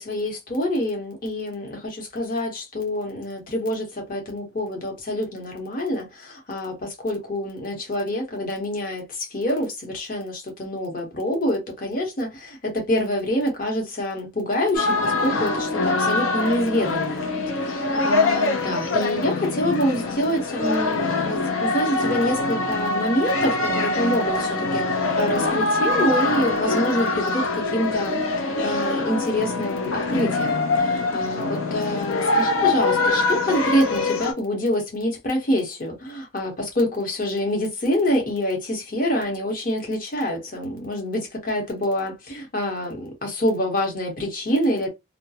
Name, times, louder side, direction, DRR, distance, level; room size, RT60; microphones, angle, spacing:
voice 1, 0.0-17.3 17.8-44.9, left 1 dB, 45° left, 0.9 m, -26 dB
sound 1, 14.7-34.3, left 3 dB, 85° left, 0.7 m, -24 dB
2.3 x 2.1 x 2.7 m
head